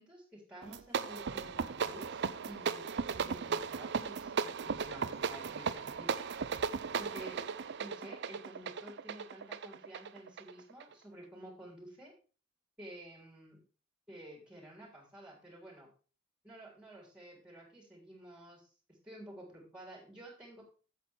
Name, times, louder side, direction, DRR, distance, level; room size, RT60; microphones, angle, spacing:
voice 1, 0.0-6.3 7.0-12.1 12.8-13.6 14.1-15.9 16.4-18.7 19.0-20.6, right 1 dB, 5° right, -1 dB, 3.4 m, -51 dB
sound 1, 0.6-10.9, right 6 dB, 55° right, 0.5 m, -36 dB
8.3 x 7.8 x 4.4 m, 0.37 s
head